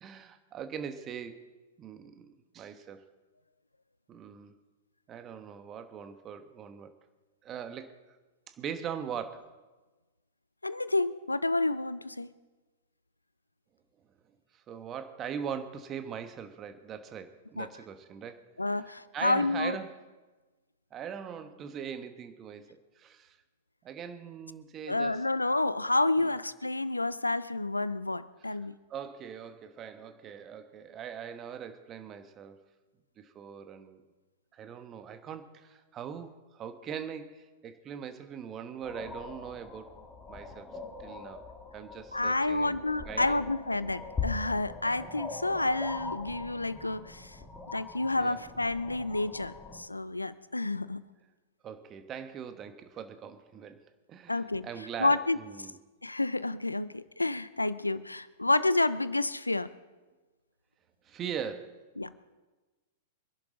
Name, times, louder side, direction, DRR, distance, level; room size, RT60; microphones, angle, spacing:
voice 1, 0.0-1.4 1.8-3.0 4.1-4.5 5.1-7.0 7.4-7.9 8.5-9.5 14.5-18.4 18.7-20.0 20.9-22.7 22.9-23.4 23.8-25.2 26.2-26.3 28.4-28.5 28.9-32.6 33.2-34.0 34.5-39.9 40.3-40.7 41.0-41.4 41.7-43.4 48.1-48.4 51.6-55.8 61.0-61.8, right 7 dB, 25° right, 9 dB, 1.3 m, -41 dB
voice 2, 10.6-12.3 17.6-17.7 18.6-19.8 24.9-28.7 42.1-47.3 47.7-51.0 54.3-54.7 55.0-55.4 56.0-59.7 62.0-62.1, left 2 dB, 85° left, 16 dB, 0.6 m, -29 dB
sound 1, 38.8-49.8, left 4 dB, 15° left, 2.4 m, -42 dB
25.0 x 11.0 x 4.0 m, 1.2 s
figure-of-eight pair, 100°, 0 cm